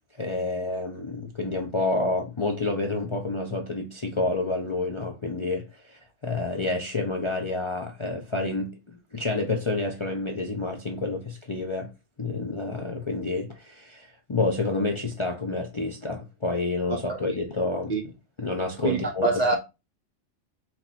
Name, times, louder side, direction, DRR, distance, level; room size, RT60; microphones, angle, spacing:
voice 1, 0.2-8.7 9.1-11.9 12.2-17.9 18.4-19.4, left 2 dB, 35° left, 0.5 m, -29 dB
voice 2, 18.8-19.6, right 3 dB, 40° right, 0.7 m, -24 dB
4.4 x 3.0 x 4.1 m
omnidirectional pair, 1.3 m